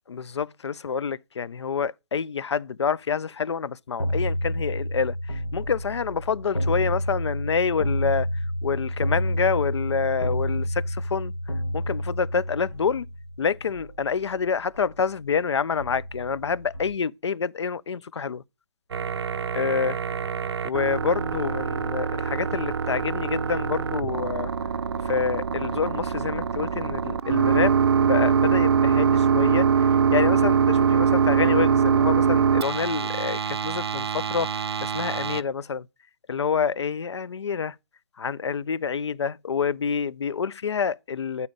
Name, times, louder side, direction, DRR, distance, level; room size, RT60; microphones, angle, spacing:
voice 1, 0.1-8.3 8.6-11.3 11.7-13.1 13.4-18.4 19.5-20.0 20.6-24.5 25.0-27.7 28.0-29.7 30.1-34.5 34.8-35.9 36.3-37.7 38.2-41.5, left 6 dB, 70° left, 0.4 m, -27 dB
sound 1, 4.0-15.4 15.8-16.9, equal, 85° left, 1.3 m, -30 dB
sound 2, 18.9-35.4, right 6 dB, 65° right, 0.4 m, -23 dB
8.5 x 4.1 x 5.0 m
figure-of-eight pair, 135°, 15 cm